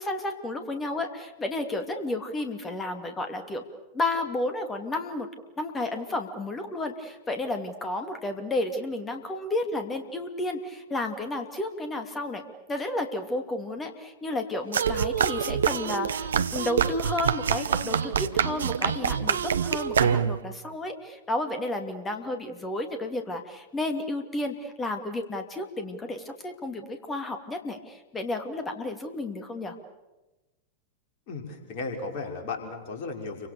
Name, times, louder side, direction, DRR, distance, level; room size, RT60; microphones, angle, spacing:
voice 1, 0.0-3.6 3.9-5.3 5.6-12.4 12.7-29.7, left 2 dB, 15° left, 6 dB, 2.8 m, -32 dB
sound 1, 14.7-20.5, right 7 dB, 65° right, 1.0 m, -26 dB
voice 2, 31.3-33.5, left 3 dB, 45° left, 2 dB, 5.7 m, -35 dB
30.0 x 25.5 x 7.0 m, 1.1 s
figure-of-eight pair, 90°, 0 cm